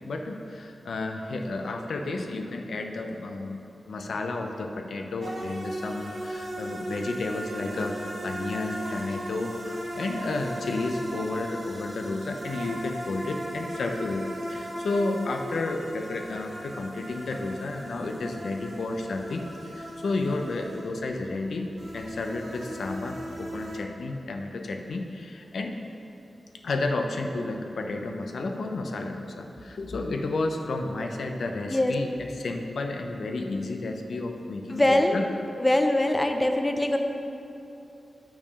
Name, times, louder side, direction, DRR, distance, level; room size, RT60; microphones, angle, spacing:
voice 1, 0.1-3.6 3.9-25.9 26.6-35.2, left 2 dB, 80° left, 4 dB, 0.6 m, -32 dB
sound 1, 5.2-23.8, equal, 55° right, 1.5 m, -37 dB
voice 2, 34.7-35.2 35.6-37.0, left 1 dB, 15° left, 5 dB, 0.5 m, -22 dB
6.7 x 5.9 x 5.3 m, 2.7 s
wide cardioid pair, 90°, 0 cm